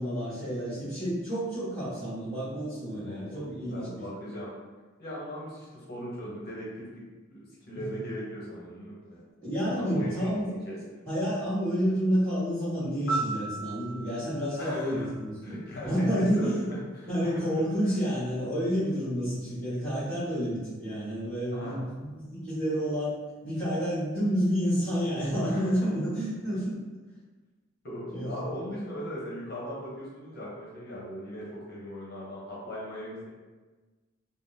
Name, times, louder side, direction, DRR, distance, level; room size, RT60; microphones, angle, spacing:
voice 1, 0.0-4.0 7.7-8.0 9.4-10.5 11.0-15.5 15.8-16.7 17.1-23.1 23.4-26.8 28.1-28.3, equal, 10° left, -15 dB, 1.3 m, -29 dB
voice 2, 3.0-4.5 5.0-7.0 7.3-9.2 9.7-11.0 14.6-15.1 15.4-17.5 21.5-21.8 25.4-25.6 27.8-33.3, equal, 50° left, -6 dB, 0.8 m, -39 dB
Piano, 13.1-16.0 24.2-24.4, right 3 dB, 75° left, 0.5 m, -37 dB
3.5 x 2.0 x 2.6 m, 1.3 s
head